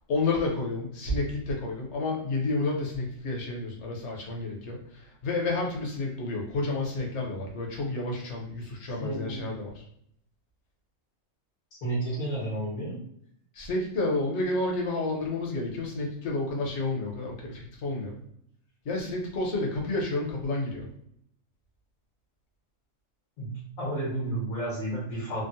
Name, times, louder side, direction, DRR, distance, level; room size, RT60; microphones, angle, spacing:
voice 1, 0.1-9.8 13.5-18.1 18.8-20.9, left 2 dB, 60° left, 0 dB, 1.1 m, -30 dB
voice 2, 9.0-9.4 11.8-13.0 23.4-25.4, right 1 dB, 85° left, -6 dB, 1.6 m, -31 dB
3.6 x 2.0 x 2.6 m, 0.70 s
omnidirectional pair, 1.4 m